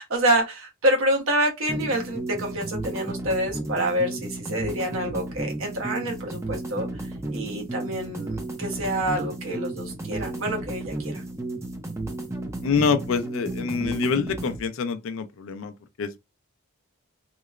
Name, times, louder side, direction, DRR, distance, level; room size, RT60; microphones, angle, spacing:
voice 1, 0.1-6.9 7.3-11.2, right 1 dB, 65° right, 0.9 m, -27 dB
sound 1, 1.7-14.6, right 2 dB, 10° right, 0.4 m, -33 dB
voice 2, 12.6-16.2, left 5 dB, 60° left, 0.4 m, -26 dB
2.9 x 2.0 x 2.3 m
head